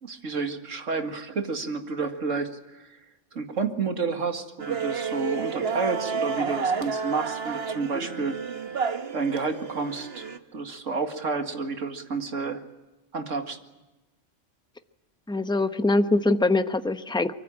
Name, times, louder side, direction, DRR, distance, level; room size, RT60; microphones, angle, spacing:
voice 1, 0.0-2.9 3.3-8.4 9.1-12.6 13.1-13.6, right 4 dB, 85° right, 6 dB, 2.4 m, -30 dB
sound 1, 4.6-10.4, right 5 dB, 55° right, 1.3 m, -30 dB
voice 2, 15.3-17.3, left 2 dB, 5° left, 9 dB, 0.8 m, -23 dB
24.0 x 24.0 x 8.8 m, 1.1 s
omnidirectional pair, 1.3 m